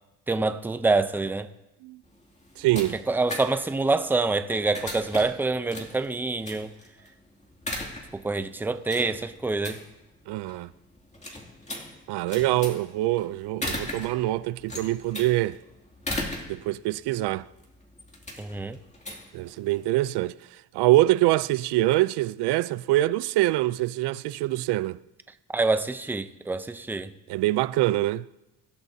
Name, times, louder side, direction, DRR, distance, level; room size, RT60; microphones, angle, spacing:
voice 1, 0.3-1.5 3.1-6.7 8.1-9.8 18.4-18.8 25.5-27.1, right 3 dB, 5° right, 0.5 m, -26 dB
sound 1, 2.0-20.0, left 1 dB, 15° left, 2.5 m, -39 dB
voice 2, 2.6-3.0 10.3-10.7 12.1-15.6 16.5-17.5 19.3-20.3 20.7-25.0 27.3-28.3, right 16 dB, 80° right, 0.5 m, -24 dB
25.0 x 12.0 x 2.7 m
cardioid pair, 125°, 39 cm